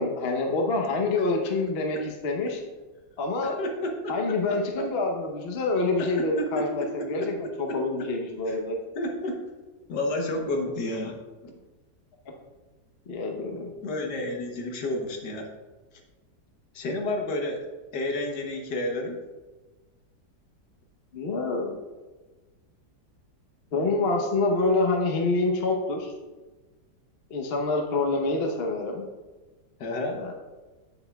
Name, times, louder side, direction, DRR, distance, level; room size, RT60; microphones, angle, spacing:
voice 1, 0.0-2.6 3.2-3.6 4.1-8.8 13.1-13.7 21.1-21.8 23.7-26.1 27.3-29.0 30.2-30.3, left 3 dB, 45° left, 2 dB, 0.9 m, -26 dB
voice 2, 3.4-4.8 6.0-6.1 6.4-6.5 6.8-6.9 7.2-7.3 8.5-8.6 9.0-9.3 9.9-11.1 11.4-11.5 13.8-15.5 16.7-17.7 17.9-19.2 29.8-30.2, left 1 dB, 70° left, 2 dB, 1.5 m, -30 dB
8.0 x 7.9 x 2.3 m, 1.2 s
omnidirectional pair, 1.9 m